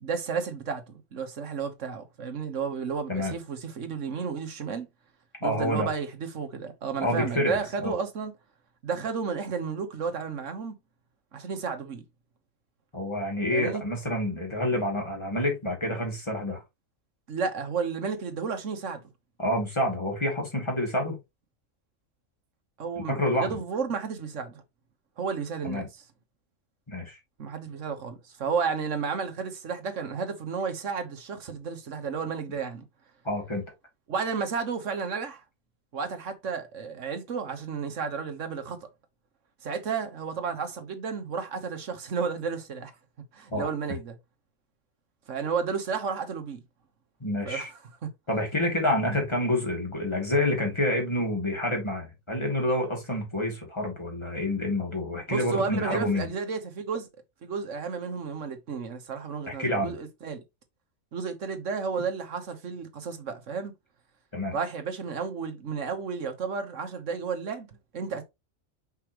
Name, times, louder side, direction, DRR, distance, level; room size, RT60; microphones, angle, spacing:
voice 1, 0.0-4.9 5.4-8.3 8.8-10.7 11.3-12.0 13.5-13.8 17.3-19.0 22.8-24.6 25.2-26.0 27.4-32.8 34.1-35.4 35.9-38.9 39.6-42.9 43.3-44.1 45.3-46.6 47.4-48.1 55.3-57.1 57.4-60.4 61.1-63.7 64.5-68.2, right 5 dB, 65° right, 1.5 m, -32 dB
voice 2, 5.4-5.9 7.0-7.9 12.9-16.6 19.4-21.2 23.0-23.6 25.6-25.9 26.9-27.2 33.2-33.6 43.5-43.7 47.2-47.7 48.3-56.3 59.5-59.9 64.3-64.6, left 1 dB, 20° left, 2.5 m, -28 dB
5.9 x 5.6 x 3.0 m
omnidirectional pair, 1.4 m